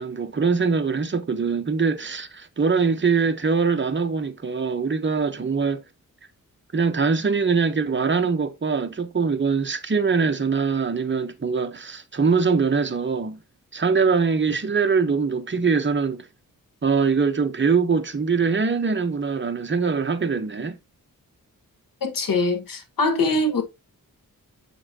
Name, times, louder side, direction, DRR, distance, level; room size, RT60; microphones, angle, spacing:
voice 1, 0.0-5.8 6.7-13.4 13.7-16.3 16.8-20.8, right 5 dB, 35° right, 1.0 m, -23 dB
voice 2, 22.0-23.6, left 2 dB, 75° left, 1.7 m, -23 dB
7.5 x 5.8 x 2.9 m
cardioid pair, 80°, 35 cm